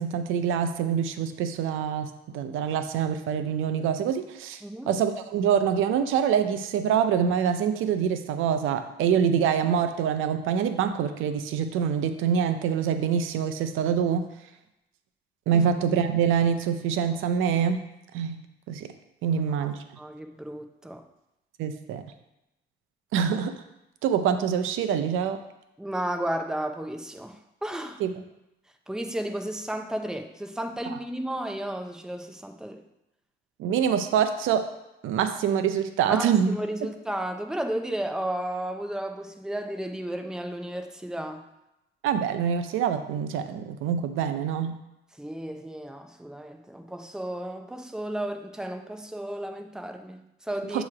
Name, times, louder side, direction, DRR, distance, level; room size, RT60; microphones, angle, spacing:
voice 1, 0.0-2.1 2.3-4.6 4.9-14.2 15.5-17.8 18.1-18.4 18.7-18.9 19.2-19.7 21.6-22.0 23.1-23.5 24.0-25.4 28.0-28.1 33.6-34.6 35.0-36.5 42.0-44.7 50.7-50.8, right 8 dB, 90° right, 9 dB, 0.5 m, -25 dB
voice 2, 19.2-21.0 25.8-28.0 28.9-32.8 36.1-41.4 45.2-50.8, right 1 dB, 5° right, 5 dB, 0.6 m, -33 dB
7.4 x 3.0 x 4.9 m, 0.90 s
cardioid pair, 90°, 20 cm